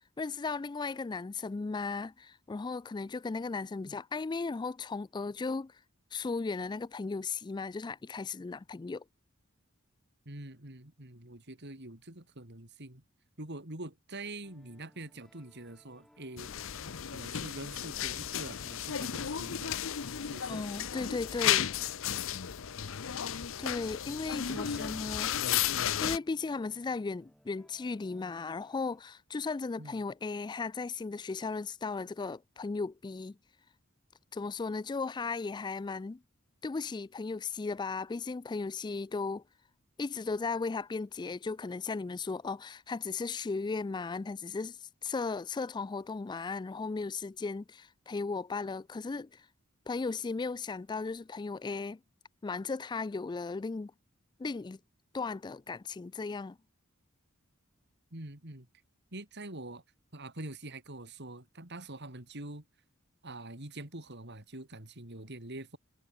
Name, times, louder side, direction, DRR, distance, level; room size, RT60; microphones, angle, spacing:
voice 1, 0.2-5.8 6.1-9.0 20.5-21.7 23.6-25.3 26.0-33.4 34.3-36.2 36.6-39.4 40.0-49.5 49.9-52.0 52.4-53.9 54.4-54.8 55.1-56.6, left 4 dB, 20° left, 0.3 m, -36 dB
voice 2, 10.3-13.0 13.4-16.5 17.1-19.8 20.2-20.6 23.8-25.0 29.8-30.0 58.1-58.7 59.1-59.8 60.1-62.6 63.2-65.8, right 2 dB, 55° right, 4.1 m, -45 dB
sound 1, 14.4-29.0, equal, ahead, 4.2 m, -64 dB
sound 2, 16.4-26.2, left 10 dB, 65° left, 0.7 m, -33 dB
head